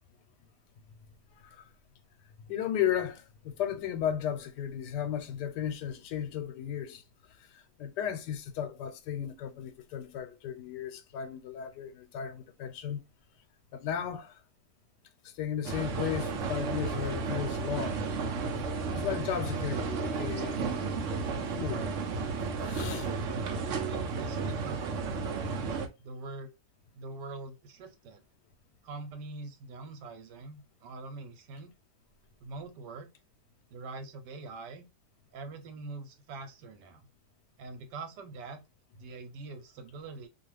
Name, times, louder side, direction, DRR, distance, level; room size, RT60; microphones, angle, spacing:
voice 1, 2.5-7.0 7.5-13.0 13.7-14.4 15.2-18.0 18.9-21.0 21.6-21.8 22.6-23.1, left 9 dB, 90° left, 1.2 m, -35 dB
sound 1, 15.6-25.9, right 4 dB, 65° right, 0.8 m, -33 dB
voice 2, 23.6-25.5 26.0-26.5 27.0-28.2 28.8-31.7 32.4-33.1 33.7-34.8 35.3-37.1 37.6-38.6 39.0-40.3, right 3 dB, 85° right, 1.3 m, -43 dB
2.8 x 2.4 x 3.1 m
omnidirectional pair, 1.8 m